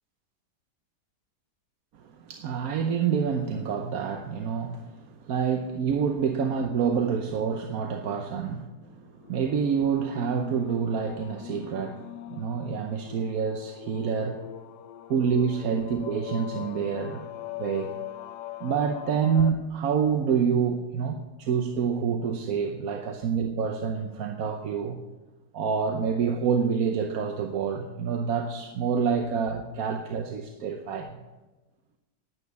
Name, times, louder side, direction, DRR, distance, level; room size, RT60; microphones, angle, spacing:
voice 1, 2.1-14.4 15.1-17.3 17.6-17.9 18.6-25.0 25.5-31.2, right 6 dB, 65° right, 5 dB, 1.2 m, -27 dB
sound 1, 9.2-19.5, left 13 dB, 90° left, 1.3 m, -41 dB
11.0 x 9.5 x 6.9 m, 1.2 s
omnidirectional pair, 1.8 m